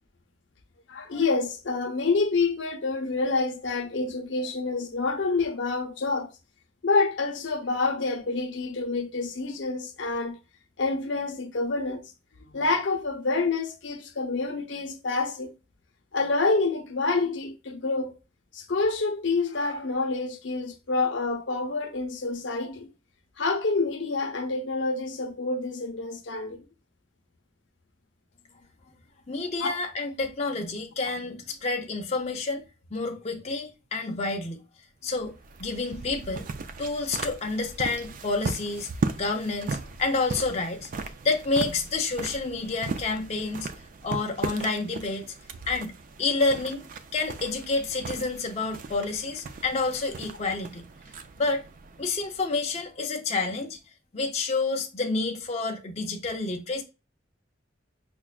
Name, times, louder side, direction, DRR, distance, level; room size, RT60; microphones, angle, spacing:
voice 1, 0.9-6.3 6.8-10.4 10.8-12.0 12.5-15.5 16.1-18.1 18.5-22.9 23.4-26.7 29.6-29.7, left 3 dB, 80° left, 0.6 m, -27 dB
voice 2, 29.3-32.6 32.9-34.6 35.0-36.5 36.8-38.9 39.2-40.9 41.2-43.7 44.0-45.2 45.7-45.9 46.2-46.8 47.1-50.9 51.4-51.6 52.0-53.8 54.1-56.8, left 3 dB, 35° left, 0.5 m, -29 dB
sound 1, 35.1-52.8, right 4 dB, 45° right, 0.3 m, -37 dB
5.9 x 2.2 x 2.3 m
head